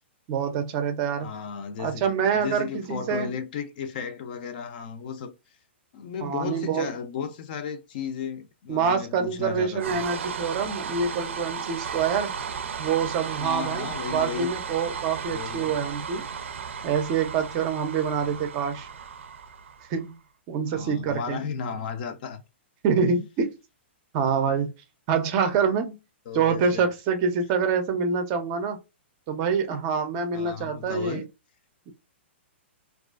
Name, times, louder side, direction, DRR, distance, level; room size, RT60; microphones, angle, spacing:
voice 1, 0.3-1.3 1.8-3.3 6.2-6.9 8.7-12.3 12.8-16.2 16.8-18.9 19.9-20.2 20.5-21.4 22.8-23.5 24.1-24.7 25.1-26.0 26.3-28.8 29.3-31.2, right 6 dB, 30° right, 0.5 m, -26 dB
voice 2, 1.2-2.1 2.4-5.3 5.9-10.0 13.4-14.5 15.2-15.8 18.2-18.4 20.7-22.4 26.3-26.9 30.3-31.3, left 6 dB, 45° left, 0.5 m, -34 dB
sound 1, 9.8-20.0, right 6 dB, 85° right, 0.4 m, -35 dB
2.4 x 2.3 x 2.3 m
hypercardioid pair, 150°, 7 cm